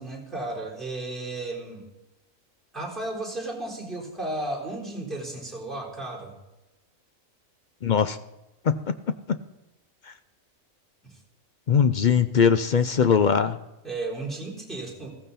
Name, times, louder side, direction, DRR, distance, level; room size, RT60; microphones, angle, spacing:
voice 1, 0.0-1.8 2.7-6.3 13.8-15.2, right 2 dB, ahead, -2 dB, 4.0 m, -34 dB
voice 2, 7.8-8.2 8.6-8.9 9.3-9.4 10.1-10.2 11.7-13.6, left 6 dB, 55° left, 11 dB, 0.5 m, -21 dB
15.0 x 15.0 x 4.1 m, 0.98 s
omnidirectional pair, 1.4 m